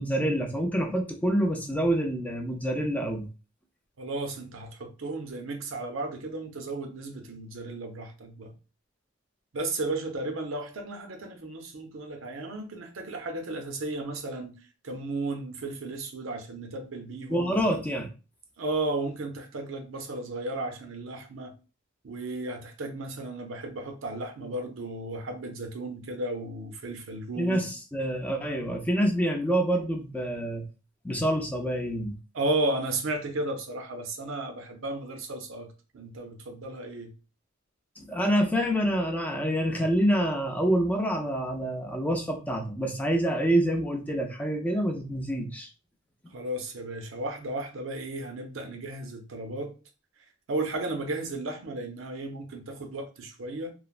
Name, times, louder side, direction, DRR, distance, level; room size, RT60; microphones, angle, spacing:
voice 1, 0.0-3.3 17.3-18.1 27.4-30.6 31.0-32.1 38.0-45.7, equal, 10° left, 0.4 m, -27 dB
voice 2, 4.0-8.5 9.5-14.5 14.8-17.5 18.6-21.5 22.0-27.7 32.3-37.1 46.3-49.7 50.5-53.7, right 2 dB, 75° right, 0.6 m, -34 dB
3.1 x 2.0 x 2.4 m
head